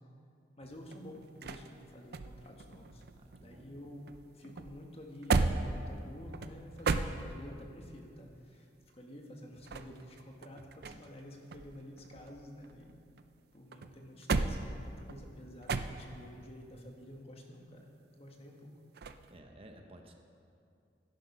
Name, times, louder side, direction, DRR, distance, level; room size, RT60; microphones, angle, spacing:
voice 1, 0.6-3.0 3.4-4.0 4.3-8.7 8.9-13.0 13.5-17.9 18.2-18.7, equal, 35° left, 1 dB, 1.5 m, -50 dB
sound 1, 0.6-3.8 4.1-7.7 9.4-11.2 11.5-13.3 13.7-16.3 19.0-19.3, right 3 dB, 60° right, 0.5 m, -36 dB
voice 2, 3.1-3.7 19.3-20.1, right 1 dB, 35° right, 4 dB, 0.9 m, -54 dB
12.5 x 10.5 x 5.5 m, 2.5 s
head